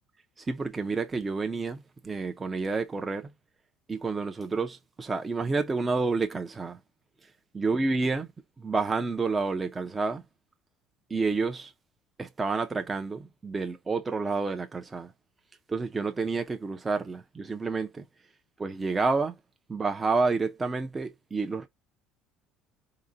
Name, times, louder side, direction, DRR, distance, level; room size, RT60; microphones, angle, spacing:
voice 1, 0.4-3.3 3.9-6.8 7.5-8.3 8.6-10.2 11.1-11.7 12.2-15.1 15.7-18.1 18.6-19.3 19.7-21.7, right 4 dB, 15° right, 0.4 m, -29 dB
3.7 x 2.0 x 3.9 m
cardioid pair, 175°, 0 cm